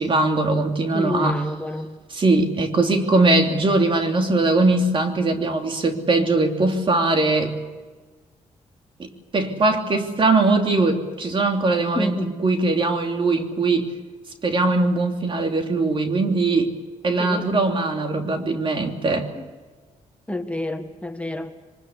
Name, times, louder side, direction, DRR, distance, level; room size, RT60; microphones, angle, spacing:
voice 1, 0.0-1.4 2.1-7.5 9.0-13.9 14.4-16.7 17.0-19.3, right 2 dB, 45° right, 4 dB, 3.1 m, -21 dB
voice 2, 0.9-2.0 11.9-12.3 17.2-17.5 19.3-19.4 20.3-21.5, left 1 dB, 10° left, 5 dB, 1.7 m, -29 dB
24.0 x 21.0 x 8.3 m, 1.4 s
cardioid pair, 90°, 12 cm